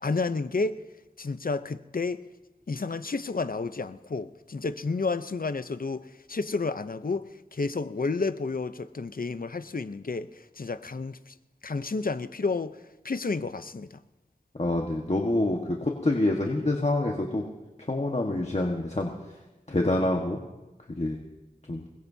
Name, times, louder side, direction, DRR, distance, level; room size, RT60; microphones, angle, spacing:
voice 1, 0.0-0.7 1.2-2.2 2.7-11.3 11.6-12.8 13.0-14.0, left 3 dB, 65° left, 12 dB, 0.7 m, -31 dB
voice 2, 14.6-17.4 17.9-19.1 19.7-20.4 20.9-21.2 21.7-21.9, left 2 dB, 45° left, 0 dB, 1.5 m, -26 dB
23.0 x 21.0 x 2.8 m, 1.1 s
wide cardioid pair, 50°, 16 cm